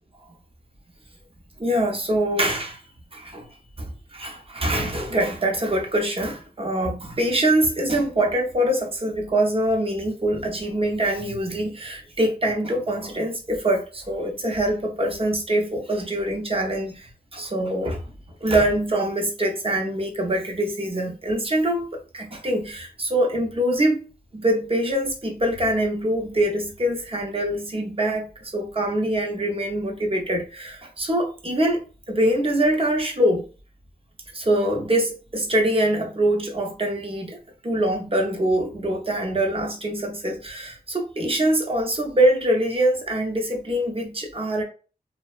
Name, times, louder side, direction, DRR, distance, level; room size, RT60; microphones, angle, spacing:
voice 1, 1.6-2.8 3.1-3.5 3.8-18.0 18.4-24.0 24.3-33.4 34.3-37.4 37.6-44.6, right 1 dB, 35° right, 0.7 m, -24 dB
2.7 x 2.1 x 2.4 m
wide cardioid pair, 80°, 16 cm